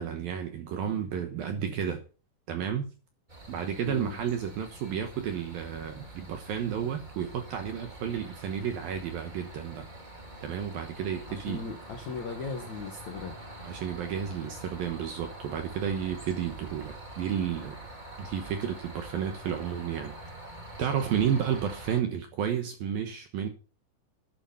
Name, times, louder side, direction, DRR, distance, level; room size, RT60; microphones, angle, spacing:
voice 1, 0.0-2.0 2.5-2.9 3.5-9.9 10.4-11.6 13.6-17.8 18.2-20.1 20.8-23.5, right 8 dB, 70° right, 2.3 m, -32 dB
sound 1, 3.3-22.0, right 1 dB, 20° right, 1.1 m, -45 dB
voice 2, 3.8-4.2 11.3-13.4, left 4 dB, 65° left, 1.8 m, -38 dB
12.0 x 9.4 x 5.5 m
omnidirectional pair, 5.6 m